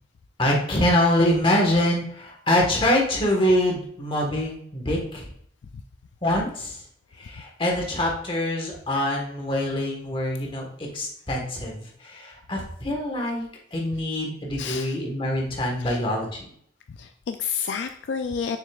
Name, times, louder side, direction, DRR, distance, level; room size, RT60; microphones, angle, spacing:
voice 1, 0.4-5.3 6.2-6.8 7.2-13.4 13.7-16.4, left 1 dB, 30° left, -1 dB, 1.4 m, -24 dB
voice 2, 14.6-14.9 15.8-16.0 17.0-18.6, left 6 dB, 65° left, 7 dB, 0.3 m, -30 dB
6.7 x 6.4 x 2.4 m, 0.66 s
head